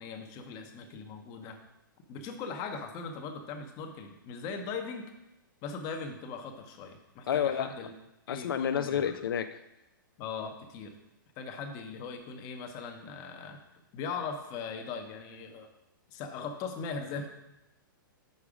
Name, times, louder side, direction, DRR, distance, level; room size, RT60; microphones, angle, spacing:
voice 1, 0.0-1.6 2.1-5.0 5.6-7.9 8.3-9.1 10.2-10.9 11.4-13.6 13.9-15.7 16.1-17.3, left 5 dB, 30° left, 5 dB, 0.8 m, -39 dB
voice 2, 7.3-7.7 8.3-9.6, left 9 dB, 85° left, 10 dB, 0.4 m, -30 dB
5.3 x 4.7 x 4.9 m, 0.92 s
hypercardioid pair, 145°, 11 cm